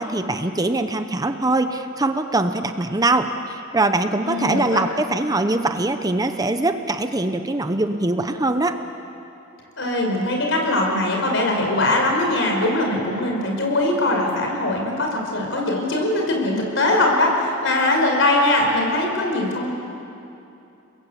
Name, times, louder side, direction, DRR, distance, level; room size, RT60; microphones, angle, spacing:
voice 1, 0.0-8.8, right 2 dB, 20° right, 8 dB, 0.9 m, -22 dB
voice 2, 4.2-4.8 9.8-19.7, left 2 dB, 65° left, 1 dB, 5.6 m, -21 dB
30.0 x 21.5 x 8.3 m, 2.8 s
head